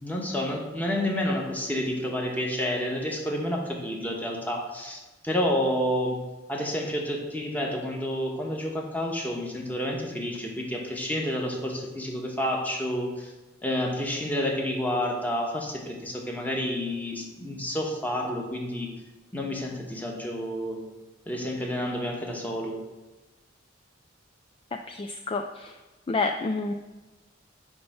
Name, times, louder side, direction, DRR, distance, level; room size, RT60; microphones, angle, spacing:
voice 1, 0.0-6.2 6.5-13.3 13.6-18.9 19.3-20.8 21.3-22.8, equal, 10° left, 0 dB, 1.2 m, -29 dB
voice 2, 24.9-25.7 26.1-26.7, left 3 dB, 30° left, 5 dB, 0.3 m, -29 dB
9.6 x 3.4 x 5.5 m, 1.1 s
head